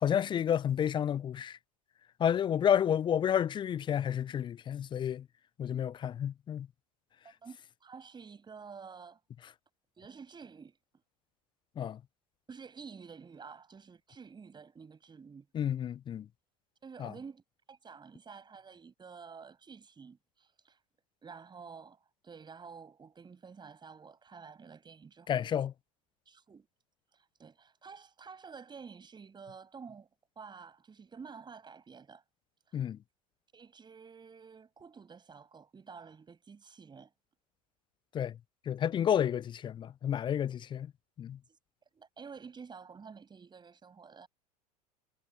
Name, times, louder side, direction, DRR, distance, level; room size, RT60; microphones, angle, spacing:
voice 1, 0.0-1.6 2.2-5.3 5.6-6.7 11.8-12.0 15.5-16.3 17.0-17.1 25.3-25.7 32.7-33.0 38.1-38.4 38.7-40.9 41.2-41.4, left 9 dB, 25° left, 0.4 m, -30 dB
voice 2, 7.2-9.2 10.0-10.8 12.5-15.5 16.8-20.8 21.2-25.6 26.3-26.7 27.1-30.1 30.4-32.2 32.7-32.8 33.5-37.1 41.5-41.6 41.9-44.3, right 5 dB, 20° right, 8.0 m, -50 dB
hypercardioid pair, 85°, 20 cm